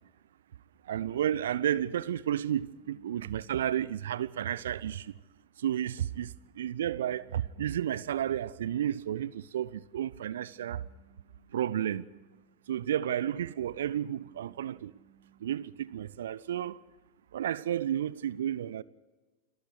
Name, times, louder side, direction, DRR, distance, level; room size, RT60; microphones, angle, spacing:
voice 1, 0.9-5.1 5.6-6.3 6.6-10.8 11.5-12.0 12.7-14.9 15.4-16.8 17.3-18.8, right 10 dB, 60° right, 0.6 m, -32 dB
sound 1, 9.8-12.8 13.2-16.2, right 3 dB, 35° left, 6.6 m, -65 dB
29.5 x 20.5 x 4.8 m
figure-of-eight pair, 90°, 0 cm